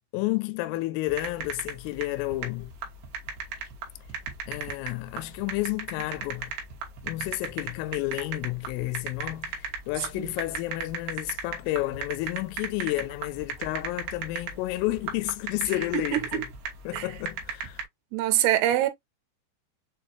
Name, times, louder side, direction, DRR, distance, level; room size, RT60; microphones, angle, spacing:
voice 1, 0.1-2.7 4.5-6.5 7.0-16.5 16.9-17.8, left 18 dB, 90° left, 3.1 m, -31 dB
sound 1, 1.1-17.8, right 6 dB, 70° right, 2.7 m, -36 dB
voice 2, 15.9-16.5 16.9-17.1 18.1-18.9, right 13 dB, 90° right, 3.3 m, -25 dB
7.0 x 2.4 x 2.6 m
omnidirectional pair, 5.5 m